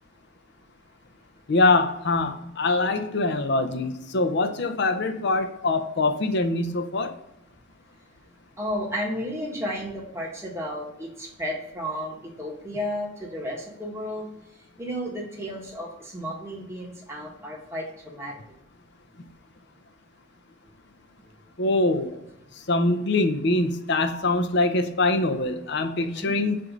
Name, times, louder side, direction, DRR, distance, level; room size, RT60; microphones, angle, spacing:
voice 1, 1.5-7.1 21.6-22.2 22.7-26.6, left 2 dB, 55° left, 0.6 m, -23 dB
voice 2, 8.6-14.3 14.8-18.3 25.3-25.4 26.0-26.4, equal, 15° right, 1.3 m, -33 dB
7.6 x 2.6 x 5.0 m
head